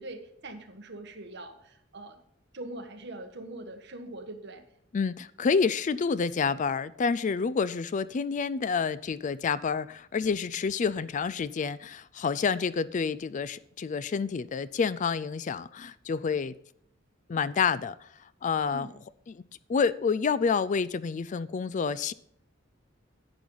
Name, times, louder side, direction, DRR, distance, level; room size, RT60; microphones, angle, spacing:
voice 1, 0.0-2.2 2.5-4.6 18.6-19.0, right 2 dB, 60° right, 1.5 m, -42 dB
voice 2, 4.9-16.5 17.3-18.1 18.4-18.9 19.7-22.1, left 5 dB, 40° left, 0.4 m, -28 dB
11.0 x 8.8 x 3.9 m
head